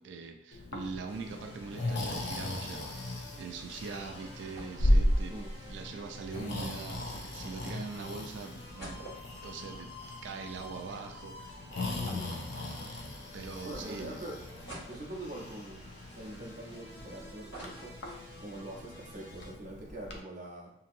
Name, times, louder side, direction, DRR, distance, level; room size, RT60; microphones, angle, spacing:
voice 1, 0.0-5.4 5.7-9.1 9.4-9.9 10.2-11.6 13.3-14.2, right 4 dB, 75° right, 5 dB, 0.3 m, -42 dB
Breathing, 0.5-20.2, left 1 dB, 65° left, 0.5 m, -36 dB
sound 1, 1.1-19.5, left 1 dB, 25° left, 1.1 m, -52 dB
sound 2, 4.5-5.0 5.3-5.4 6.3-7.6 8.1-8.2 8.5-11.0 11.4-11.5 12.0-13.2 13.7-13.8 14.7-15.5 16.1-17.0 17.3-18.6 19.0-19.1 19.3-19.6, right 1 dB, 80° left, 1.4 m, -49 dB
voice 2, 5.2-5.5 12.0-12.3 13.6-14.5 14.9-18.0 18.4-20.7, right 1 dB, 45° right, -2 dB, 0.7 m, -44 dB
2.8 x 2.6 x 2.6 m, 0.72 s
head